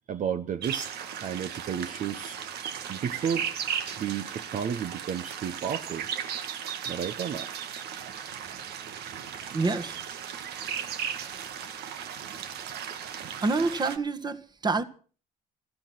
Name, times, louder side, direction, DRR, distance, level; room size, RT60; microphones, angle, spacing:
voice 1, 0.1-2.4 2.9-3.5 4.0-6.1 6.9-7.5, right 8 dB, 50° right, 1.0 m, -32 dB
sound 1, 0.6-14.0, right 8 dB, 75° right, 1.8 m, -36 dB
voice 2, 9.5-10.0 13.4-14.8, right 3 dB, 25° right, 1.7 m, -27 dB
16.0 x 14.5 x 6.0 m
cardioid pair, 110°, 17 cm